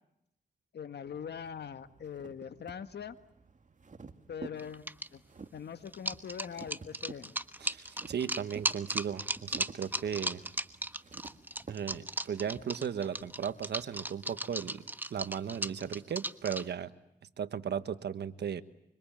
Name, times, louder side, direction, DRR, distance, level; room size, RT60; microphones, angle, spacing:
voice 1, 0.7-3.2 4.3-5.2 5.5-7.3, left 7 dB, 80° left, 10 dB, 1.7 m, -42 dB
sound 1, 1.0-11.7, right 4 dB, 45° right, 2.4 m, -52 dB
sound 2, 4.6-5.1 5.9-16.6, right 1 dB, 10° right, 1.3 m, -36 dB
voice 2, 7.6-10.4 11.7-14.8 15.1-16.9 17.4-18.6, right 8 dB, 90° right, 12 dB, 1.4 m, -36 dB
25.5 x 25.5 x 8.9 m, 0.83 s
cardioid pair, 65°, 17 cm